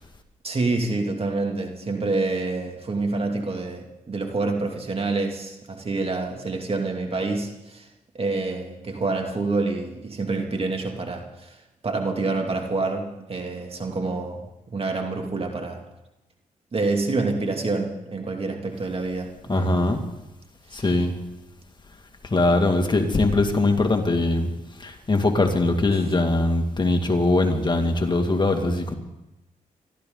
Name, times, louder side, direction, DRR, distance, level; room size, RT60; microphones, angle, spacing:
voice 1, 0.4-7.9 8.1-11.6 11.8-14.5 14.7-15.8 16.7-19.9 20.7-20.9, right 3 dB, 40° right, 2 dB, 2.5 m, -27 dB
voice 2, 19.5-20.0 20.7-21.1 22.2-24.5 24.8-28.9, left 2 dB, 30° left, 4 dB, 2.2 m, -21 dB
24.5 x 13.0 x 3.9 m, 0.94 s
cardioid pair, 75°, 14 cm